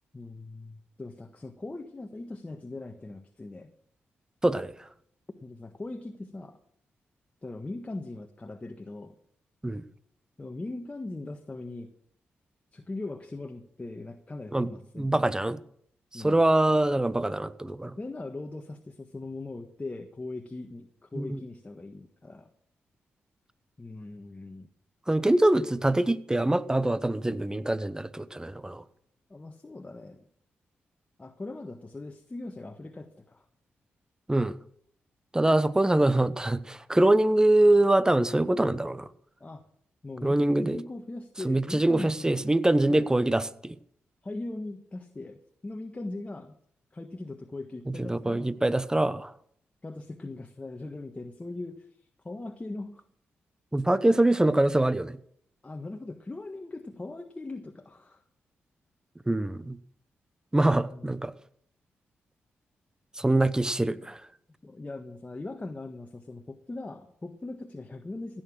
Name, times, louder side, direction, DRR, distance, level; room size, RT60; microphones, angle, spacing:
voice 1, 0.1-3.7 5.4-6.6 7.4-9.1 10.4-11.9 12.7-15.3 16.1-16.4 18.0-22.5 23.8-24.7 29.3-30.2 31.2-33.4 39.4-39.6 40.0-42.5 42.9-43.1 44.2-45.4 45.6-46.6 46.9-48.5 49.1-49.2 49.8-53.0 55.6-58.2 60.9-61.1 63.8-64.0 64.6-68.4, left 2 dB, 25° left, 1.4 m, -40 dB
voice 2, 14.9-15.6 16.1-17.9 21.1-21.4 25.1-28.8 34.3-34.5 35.3-39.1 40.2-40.8 41.4-43.8 47.9-49.3 53.7-55.2 59.3-59.8 60.5-61.3 63.2-64.2, right 1 dB, 15° right, 0.9 m, -24 dB
16.0 x 9.2 x 6.3 m
supercardioid pair, 50°, 5 cm